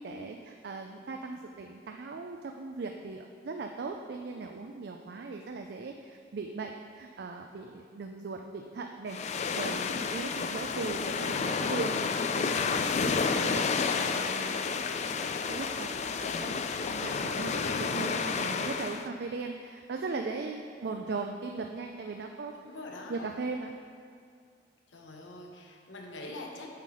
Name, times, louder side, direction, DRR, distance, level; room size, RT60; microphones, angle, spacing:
voice 1, 0.0-14.9 15.5-22.8 23.1-23.8, right 3 dB, 60° right, 3 dB, 0.4 m, -39 dB
sound 1, 9.1-19.1, left 5 dB, 40° left, 0.3 m, -30 dB
voice 2, 22.5-23.3 24.9-26.7, left 2 dB, 80° left, 1 dB, 1.0 m, -44 dB
7.4 x 5.8 x 4.9 m, 2.3 s
head